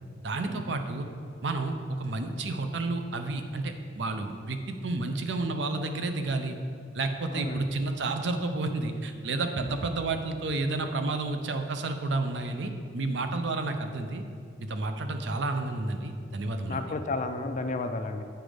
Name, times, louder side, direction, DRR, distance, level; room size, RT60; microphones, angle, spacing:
voice 1, 0.2-1.1 1.4-6.6 6.9-14.2 14.6-16.8, right 2 dB, 65° right, 7 dB, 0.6 m, -31 dB
voice 2, 7.3-7.6 16.7-18.2, left 3 dB, 40° left, 7 dB, 0.4 m, -32 dB
7.9 x 5.1 x 5.0 m, 2.3 s
head